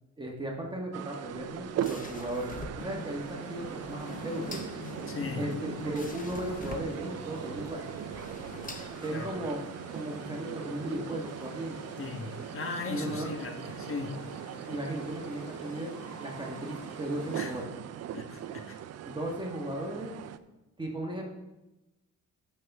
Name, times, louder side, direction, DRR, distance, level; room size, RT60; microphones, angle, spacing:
voice 1, 0.2-4.6 5.3-7.9 9.0-9.6 9.9-11.8 12.9-13.3 14.7-17.7 19.0-20.1 20.8-21.3, right 1 dB, 15° right, -1 dB, 1.5 m, -36 dB
sound 1, 0.9-20.4, right 11 dB, 55° right, 0.5 m, -40 dB
sound 2, 1.2-9.6, left 3 dB, 25° left, 1.0 m, -46 dB
sound 3, 2.8-17.7, left 5 dB, 75° left, 1.1 m, -46 dB
voice 2, 5.1-5.5 9.1-9.3 12.0-14.2 17.3-17.5 18.1-18.8, left 4 dB, 45° left, 4 dB, 1.3 m, -38 dB
13.5 x 5.6 x 3.6 m, 1.0 s
cardioid pair, 90°, 30 cm